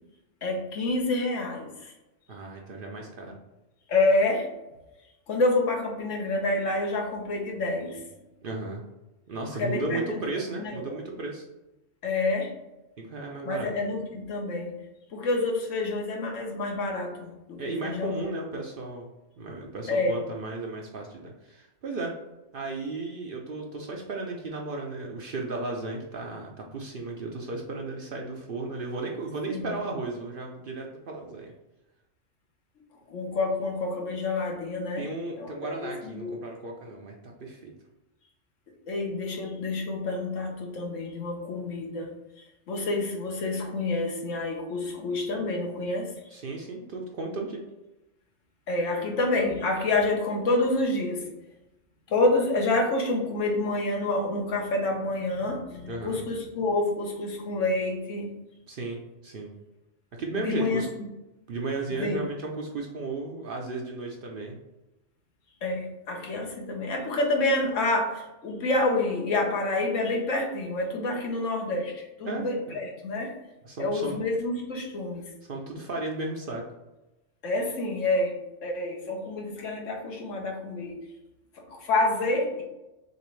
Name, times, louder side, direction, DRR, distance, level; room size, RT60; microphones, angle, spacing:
voice 1, 0.4-1.9 3.9-4.5 5.3-8.0 9.6-10.2 10.6-11.0 12.0-12.6 13.5-14.7 15.1-18.4 19.9-20.2 29.5-29.8 33.1-35.1 35.4-36.3 38.9-46.1 48.7-51.3 52.1-58.3 60.3-60.9 61.9-62.3 65.6-73.3 73.8-75.2 77.4-81.0 81.7-82.6, left 2 dB, 70° left, 1 dB, 1.2 m, -28 dB
voice 2, 2.3-3.4 8.4-8.8 9.3-11.4 13.0-13.7 17.6-19.1 19.4-22.1 22.5-31.5 35.0-37.7 46.3-47.6 55.8-56.2 58.7-59.5 60.2-60.9 61.5-64.6 72.3-72.8 73.6-74.2 75.4-76.6, right 3 dB, 55° right, 0 dB, 0.7 m, -34 dB
6.6 x 2.6 x 3.1 m, 0.99 s
omnidirectional pair, 1.4 m